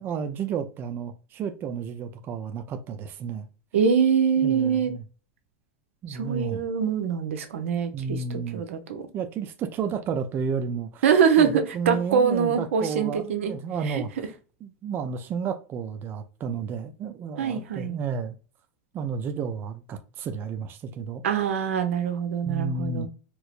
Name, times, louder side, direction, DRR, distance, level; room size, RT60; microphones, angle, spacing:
voice 1, 0.0-3.5 4.4-5.0 6.0-6.6 7.9-8.6 9.1-11.0 11.4-14.1 14.6-18.3 18.9-21.2 22.4-23.1, right 6 dB, 30° right, 0.4 m, -31 dB
voice 2, 3.7-4.9 6.1-9.0 11.0-13.5 13.9-14.0 17.4-18.0 21.2-23.1, right 7 dB, 80° right, 0.8 m, -24 dB
4.5 x 2.0 x 2.4 m
supercardioid pair, 125°, 7 cm